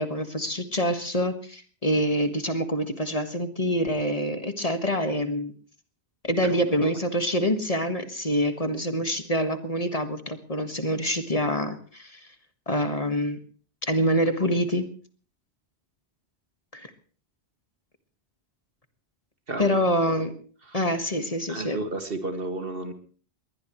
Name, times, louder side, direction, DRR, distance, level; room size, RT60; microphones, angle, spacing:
voice 1, 0.0-5.5 6.2-12.2 12.7-13.4 13.8-14.9 16.7-16.9 19.6-20.3 20.7-21.8, equal, 35° left, 8 dB, 1.7 m, -26 dB
voice 2, 19.5-19.8 20.7-20.8 21.5-22.9, right 2 dB, 60° right, 7 dB, 2.2 m, -32 dB
22.0 x 19.5 x 3.1 m, 0.42 s
omnidirectional pair, 1.1 m